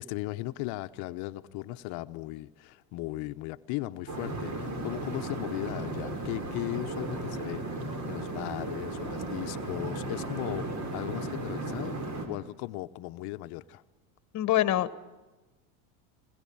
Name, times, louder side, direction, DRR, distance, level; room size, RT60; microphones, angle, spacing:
voice 1, 0.0-12.0 12.3-13.8, left 18 dB, 60° left, 11 dB, 1.0 m, -37 dB
sound 1, 4.1-12.3, right 2 dB, 40° right, 5.5 m, -35 dB
voice 2, 14.3-15.0, left 13 dB, 40° left, 15 dB, 1.4 m, -25 dB
22.0 x 20.5 x 8.7 m, 1.2 s
supercardioid pair, 115°, 42 cm